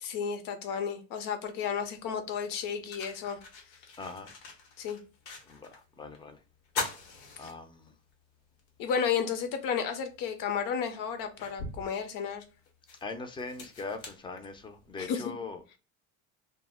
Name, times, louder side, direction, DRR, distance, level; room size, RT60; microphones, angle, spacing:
voice 1, 0.0-3.4 4.8-5.0 7.4-7.5 8.8-12.4 15.0-15.2, left 7 dB, 65° left, 0.7 m, -32 dB
sound 1, 1.8-1.9 2.5-5.8 6.1-6.2 6.6-8.1 8.6-8.7 10.1-10.2 10.8-15.0, left 3 dB, 85° left, 0.9 m, -42 dB
voice 2, 4.0-4.3 5.5-6.4 7.4-7.9 13.0-15.8, left 3 dB, 15° left, 0.4 m, -41 dB
2.1 x 2.0 x 3.3 m
supercardioid pair, 100°, 37 cm